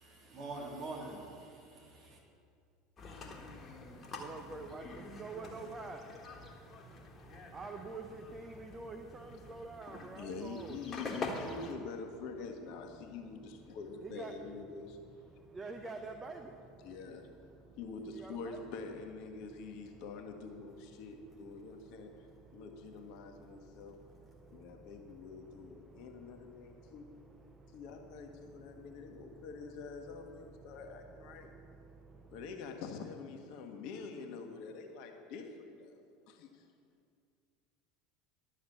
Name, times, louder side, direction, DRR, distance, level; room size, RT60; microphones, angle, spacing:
voice 1, 0.0-2.2, right 2 dB, 45° right, 2.7 m, -45 dB
sound 1, 3.0-11.8, left 2 dB, 30° left, 1.5 m, -46 dB
voice 2, 3.8-10.8 13.1-14.4 15.3-18.6 19.4-20.1 20.6-29.5 30.2-32.4, right 3 dB, 25° right, 0.8 m, -50 dB
voice 3, 10.1-14.9 16.8-17.3 17.6-22.1 22.5-24.0 24.5-27.1 27.7-31.5 32.3-36.7, left 4 dB, 55° left, 1.2 m, -46 dB
11.5 x 6.4 x 7.1 m
figure-of-eight pair, 75°, 0 cm